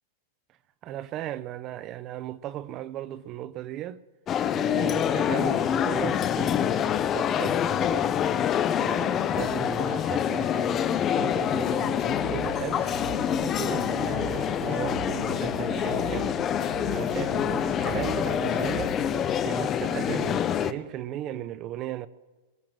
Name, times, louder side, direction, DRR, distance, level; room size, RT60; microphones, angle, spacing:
voice 1, 0.8-4.0 4.5-8.1 8.8-12.9 13.4-16.4 16.9-19.0 19.4-22.1, right 13 dB, 30° right, 0.5 m, -36 dB
sound 1, 4.3-20.7, left 9 dB, 25° left, 0.6 m, -26 dB
sound 2, 11.8-19.1, right 6 dB, 55° right, 6.4 m, -40 dB
22.5 x 7.6 x 7.4 m
supercardioid pair, 150°, 0 cm